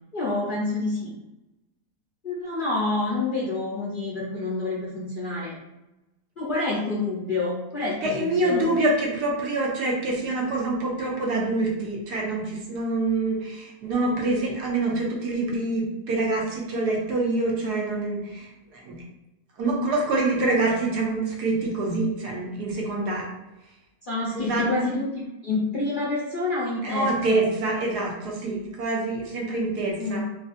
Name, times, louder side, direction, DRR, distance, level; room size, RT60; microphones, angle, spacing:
voice 1, 0.1-1.1 2.2-5.6 6.4-8.6 24.0-27.4 30.0-30.2, left 3 dB, 55° left, -6 dB, 0.5 m, -28 dB
voice 2, 8.0-19.0 19.6-23.3 24.3-24.7 26.8-30.2, right 2 dB, 80° right, -2 dB, 1.3 m, -26 dB
3.9 x 2.6 x 2.5 m, 0.95 s
omnidirectional pair, 1.7 m